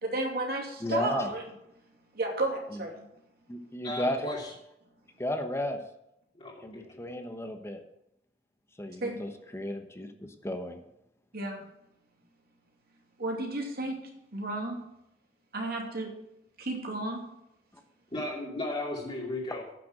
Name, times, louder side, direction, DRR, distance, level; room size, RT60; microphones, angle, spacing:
voice 1, 0.0-1.4 2.1-3.0 9.0-9.2 11.3-11.6 13.2-13.9 14.3-14.8 15.5-16.1 16.6-17.2, right 2 dB, 60° right, 1 dB, 2.6 m, -32 dB
voice 2, 0.8-1.3 2.7-2.8 3.5-4.2 5.2-5.8 6.6-7.8 8.8-10.8, left 1 dB, 15° left, 6 dB, 1.0 m, -33 dB
voice 3, 3.8-4.5 6.4-7.0 18.1-19.6, left 1 dB, 35° left, -6 dB, 2.7 m, -35 dB
9.9 x 6.8 x 7.7 m, 0.83 s
head